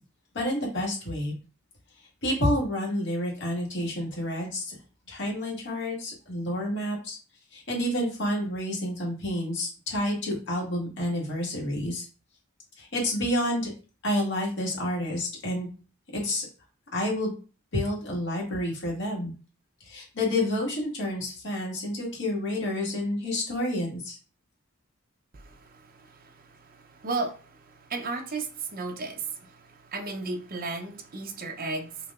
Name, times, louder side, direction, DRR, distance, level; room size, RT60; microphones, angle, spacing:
voice 1, 0.3-1.4 2.2-4.7 5.1-7.2 7.5-12.0 12.8-13.7 14.0-15.7 16.1-16.4 16.9-17.3 17.7-19.3 19.8-24.2, left 1 dB, 60° left, 1.8 m, -29 dB
voice 2, 25.3-32.1, right 3 dB, 45° right, 0.7 m, -35 dB
6.1 x 2.9 x 2.4 m
head